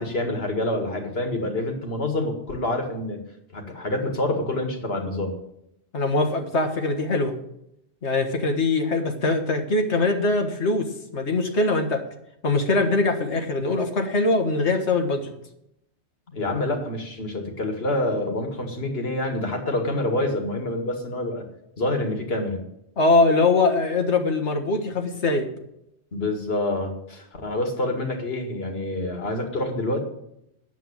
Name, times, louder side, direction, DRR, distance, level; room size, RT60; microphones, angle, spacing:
voice 1, 0.0-3.2 3.5-5.4 16.3-21.4 21.8-22.6 26.1-30.0, left 1 dB, 60° left, 4 dB, 2.2 m, -27 dB
voice 2, 5.9-7.4 8.0-12.0 12.4-15.3 23.0-25.5, left 3 dB, 80° left, 5 dB, 1.8 m, -22 dB
9.3 x 7.8 x 8.7 m, 0.80 s
omnidirectional pair, 1.1 m